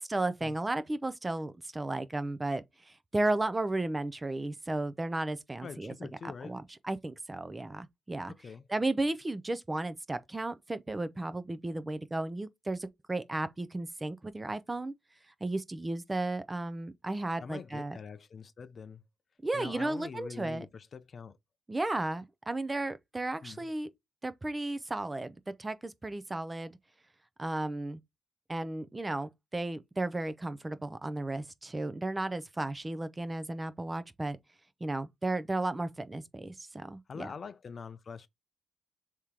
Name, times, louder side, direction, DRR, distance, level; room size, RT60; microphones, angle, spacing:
voice 1, 0.0-5.9 6.2-8.3 8.7-14.9 15.4-18.0 19.4-20.7 21.7-23.9 24.2-26.8 27.4-28.0 28.5-34.4 34.8-37.3, right 2 dB, 15° right, 0.5 m, -34 dB
voice 2, 5.6-6.6 8.3-8.6 17.4-19.0 19.5-21.4 23.4-23.7 37.1-38.3, left 5 dB, 45° left, 0.5 m, -44 dB
4.8 x 3.5 x 2.9 m
cardioid pair, 90°, 0 cm